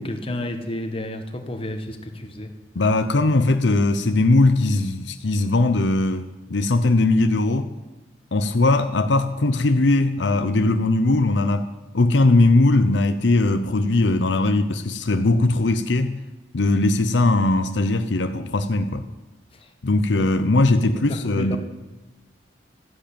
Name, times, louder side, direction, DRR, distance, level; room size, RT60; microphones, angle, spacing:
voice 1, 0.0-2.5 19.5-19.7 20.2-20.3 20.8-21.6, left 1 dB, 30° left, 5 dB, 1.6 m, -31 dB
voice 2, 2.7-7.7 8.3-11.7 11.9-16.2 16.5-19.1 19.8-21.6, left 2 dB, 75° left, 9 dB, 0.8 m, -19 dB
13.5 x 10.5 x 8.7 m, 1.1 s
head